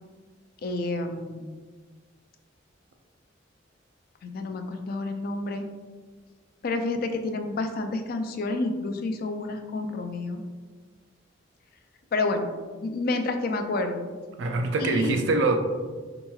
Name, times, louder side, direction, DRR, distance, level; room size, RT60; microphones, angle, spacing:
voice 1, 0.6-1.5 4.2-5.7 6.6-10.4 12.1-12.5 12.8-14.1 14.8-15.2, left 2 dB, 50° left, 6 dB, 0.4 m, -29 dB
voice 2, 14.4-15.6, right 3 dB, 70° right, 4 dB, 0.4 m, -24 dB
4.5 x 2.9 x 2.3 m, 1.4 s
head